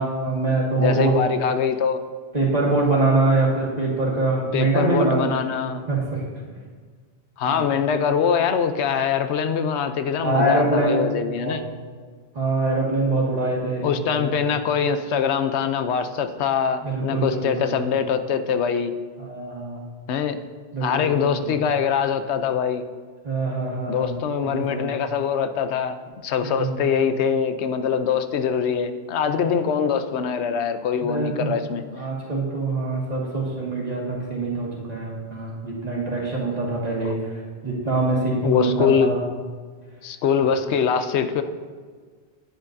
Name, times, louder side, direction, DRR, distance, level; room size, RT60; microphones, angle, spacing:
voice 1, 0.0-1.2 2.3-5.4 5.9-6.2 7.5-7.6 10.2-11.0 11.4-11.6 12.3-14.2 16.8-17.7 19.2-19.8 20.7-21.5 23.2-24.9 26.4-27.0 29.3-29.4 31.0-31.5 31.9-39.2, right 2 dB, 40° right, -4 dB, 1.8 m, -24 dB
voice 2, 0.8-2.0 4.5-5.8 7.4-11.6 13.8-18.9 20.1-20.4 20.8-22.8 23.9-26.0 26.2-31.8 38.4-39.1 40.0-41.4, left 7 dB, 85° left, 9 dB, 0.9 m, -23 dB
10.5 x 9.6 x 2.6 m, 1.6 s
omnidirectional pair, 1.1 m